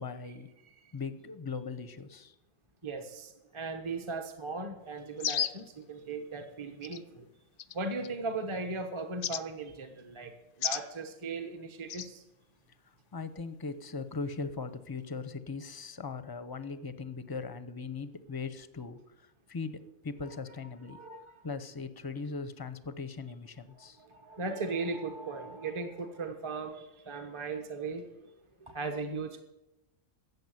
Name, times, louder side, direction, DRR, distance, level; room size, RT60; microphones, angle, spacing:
voice 1, 0.0-0.5 0.9-2.3 13.1-21.0 21.4-24.0, left 4 dB, 20° left, 12 dB, 0.7 m, -39 dB
voice 2, 0.6-0.9 2.8-7.3 7.7-12.2 20.9-21.3 23.8-28.1 28.6-29.4, right 3 dB, 25° right, 6 dB, 1.1 m, -38 dB
sound 1, 5.2-5.7 6.8-7.0 7.6-8.1 9.2-9.4 10.6-10.9 11.9-12.1, left 10 dB, 70° left, 1.0 m, -32 dB
14.0 x 8.1 x 9.3 m, 0.94 s
omnidirectional pair, 1.3 m